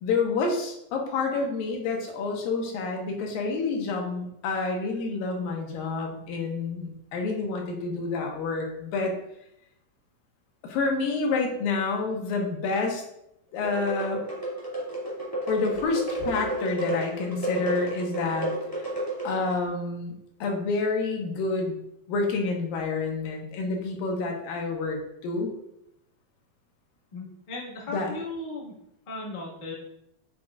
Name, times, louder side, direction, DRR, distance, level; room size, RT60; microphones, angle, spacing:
voice 1, 0.0-9.1 10.6-13.0 13.5-14.2 15.5-18.9 19.2-20.1 20.4-21.8 22.1-25.5 27.9-28.1, left 3 dB, 85° left, 1 dB, 2.9 m, -28 dB
sound 1, 13.6-19.6, right 1 dB, 5° left, 2.1 m, -32 dB
voice 2, 27.1-28.7 29.1-29.7, left 2 dB, 25° left, -5 dB, 1.0 m, -36 dB
8.4 x 7.5 x 2.5 m, 0.80 s
omnidirectional pair, 4.0 m